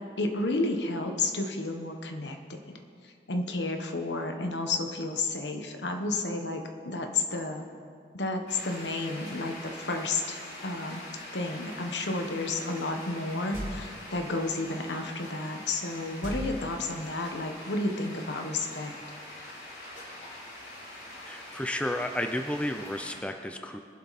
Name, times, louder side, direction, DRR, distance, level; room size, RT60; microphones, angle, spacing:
voice 1, 0.2-2.6 3.0-7.6 8.1-11.0 11.3-18.9, left 2 dB, 80° left, 4 dB, 1.3 m, -31 dB
sound 1, 8.5-23.2, left 1 dB, 65° left, 3.5 m, -44 dB
sound 2, 13.5-14.2 16.2-17.2, equal, 50° right, 2.8 m, -38 dB
voice 2, 21.2-23.8, left 1 dB, 5° left, 5 dB, 0.5 m, -32 dB
23.0 x 7.8 x 4.2 m, 2.2 s
head